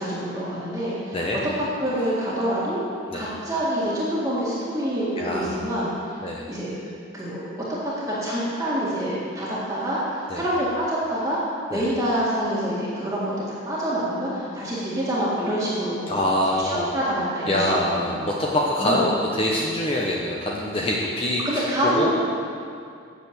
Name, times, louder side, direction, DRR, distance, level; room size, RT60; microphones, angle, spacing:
voice 1, 0.0-1.2 1.8-2.8 3.1-5.9 6.5-6.8 7.1-11.4 11.7-16.1 16.5-18.4 18.8-19.0 21.4-22.1, equal, 15° right, -8 dB, 1.8 m, -26 dB
voice 2, 5.2-5.7 6.2-6.5 10.3-10.4 11.7-11.9 16.1-16.9 17.5-22.1, left 1 dB, 30° left, -3 dB, 0.8 m, -25 dB
8.5 x 6.7 x 7.9 m, 2.3 s
head